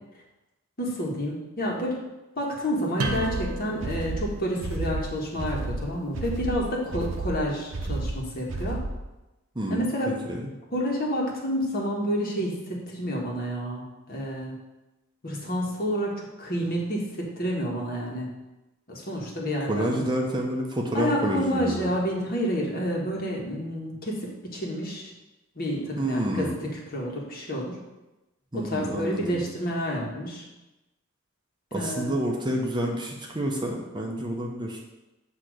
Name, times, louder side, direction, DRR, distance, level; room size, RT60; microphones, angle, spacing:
voice 1, 0.8-2.1 2.3-8.8 9.7-10.2 10.7-14.6 15.2-18.3 18.9-20.0 20.9-25.1 25.5-27.8 28.5-30.4 31.7-32.1, equal, 45° left, -2 dB, 1.5 m, -29 dB
sound 1, 3.0-9.1, right 2 dB, 60° right, 0.7 m, -32 dB
student guitar twang e, 3.0-8.4, right 2 dB, 85° right, 0.9 m, -37 dB
voice 2, 19.7-21.9 26.0-26.6 28.5-29.4 31.7-34.8, right 1 dB, 20° right, 0 dB, 0.7 m, -28 dB
8.2 x 2.9 x 6.3 m, 1.0 s
head